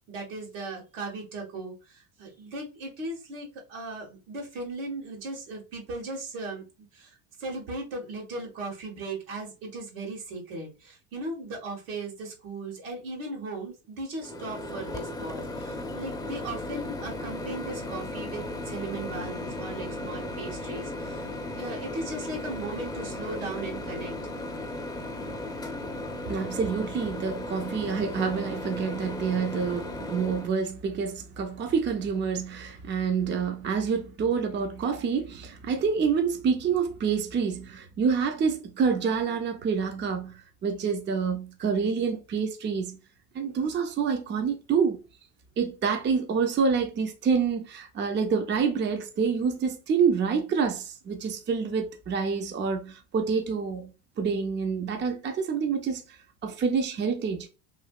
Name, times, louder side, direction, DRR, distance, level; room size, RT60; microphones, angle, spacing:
voice 1, 0.0-21.3 21.6-24.1, right 2 dB, 80° right, 1.7 m, -37 dB
Microwave oven, 14.2-30.5, left 1 dB, 10° left, 0.6 m, -36 dB
voice 2, 26.2-43.0 43.3-45.0 45.6-53.9 54.2-56.0 56.4-57.5, right 6 dB, 30° right, 0.6 m, -27 dB
3.2 x 2.7 x 2.4 m
supercardioid pair, 90°, 39 cm